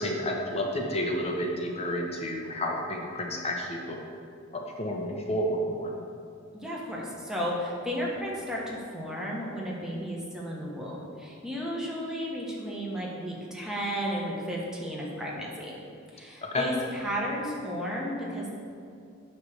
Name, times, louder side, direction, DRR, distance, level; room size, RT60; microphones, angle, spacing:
voice 1, 0.0-4.0 4.5-5.9 16.4-16.7, equal, 30° left, 0 dB, 0.7 m, -30 dB
voice 2, 6.6-15.7 16.1-18.5, equal, 5° right, -4 dB, 1.3 m, -33 dB
9.3 x 3.3 x 6.5 m, 2.4 s
head